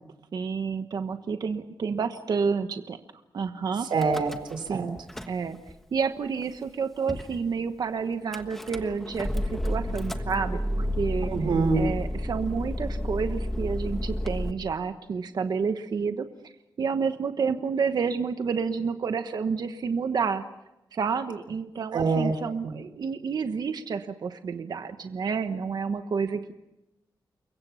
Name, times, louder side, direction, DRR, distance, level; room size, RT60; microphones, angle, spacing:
voice 1, 0.3-3.0 3.3-3.9 4.7-5.0 5.3-5.6 5.9-11.3 11.7-16.5 16.8-20.4 20.9-26.5, right 5 dB, 60° right, 8 dB, 1.2 m, -29 dB
Car / Engine starting / Idling, 3.9-4.7 5.0-5.7 6.4-6.5 6.7-6.8 7.1-7.4 8.3-14.5, left 1 dB, 5° left, 1.4 m, -31 dB
voice 2, 3.9-4.9 11.2-11.9 21.9-22.3 22.6-22.8, right 4 dB, 90° right, 7 dB, 3.7 m, -25 dB
29.0 x 23.0 x 5.7 m, 0.94 s
wide cardioid pair, 155°, 8 cm